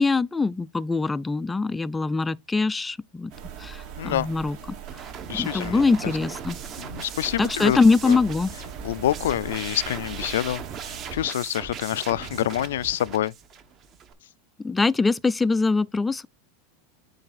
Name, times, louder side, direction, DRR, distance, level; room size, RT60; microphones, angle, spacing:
voice 1, 0.0-3.3 3.6-4.6 4.9-5.0 5.3-6.6 7.4-8.5 14.6-16.3, left 4 dB, 10° left, 0.4 m, -23 dB
sound 1, 3.3-11.2, right 8 dB, 55° right, 2.4 m, -41 dB
voice 2, 4.0-4.3 5.3-6.1 6.8-7.8 8.0-8.2 8.8-13.3, left 12 dB, 85° left, 0.3 m, -27 dB
sound 2, 4.9-14.1, right 7 dB, 35° right, 1.1 m, -39 dB
8.7 x 3.4 x 4.1 m
supercardioid pair, 130°, 0 cm